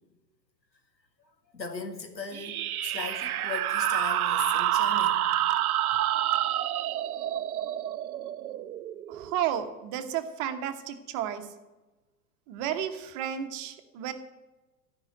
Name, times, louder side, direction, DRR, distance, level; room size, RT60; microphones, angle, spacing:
voice 1, 1.5-5.7, left 3 dB, 85° left, 5 dB, 2.0 m, -38 dB
sound 1, 2.3-9.6, right 12 dB, 60° right, 0.7 m, -28 dB
voice 2, 9.1-11.5 12.5-14.1, right 10 dB, 35° right, 8 dB, 1.3 m, -32 dB
14.5 x 5.8 x 9.2 m, 1.1 s
figure-of-eight pair, 100°, 50 cm